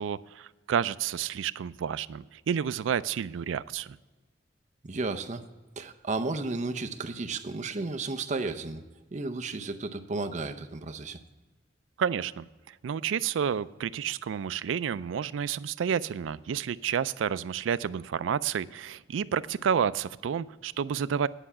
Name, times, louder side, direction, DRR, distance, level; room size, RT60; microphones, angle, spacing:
voice 1, 0.0-4.0 12.0-12.5 12.8-21.3, right 7 dB, 90° right, 16 dB, 0.4 m, -30 dB
voice 2, 4.8-5.4 5.8-8.8 9.1-11.2, right 3 dB, 40° right, 7 dB, 0.7 m, -33 dB
10.0 x 5.6 x 7.2 m, 1.2 s
head